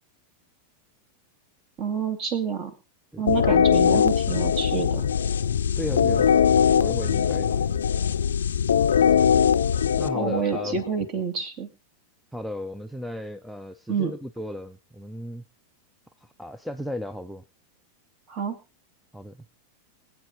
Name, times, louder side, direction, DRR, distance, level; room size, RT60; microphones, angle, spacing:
voice 1, 1.8-2.7 3.2-5.1 10.1-11.7 13.9-14.1 18.3-18.6, right 6 dB, 35° right, 8 dB, 2.2 m, -28 dB
sound 1, 3.3-10.9, left 7 dB, 65° left, 0.6 m, -21 dB
voice 2, 5.8-6.3 6.7-7.8 10.0-10.7 12.3-15.4 16.2-17.4 19.1-19.5, equal, ahead, 11 dB, 0.6 m, -35 dB
25.0 x 8.4 x 2.8 m, 0.28 s
figure-of-eight pair, 90°, 0 cm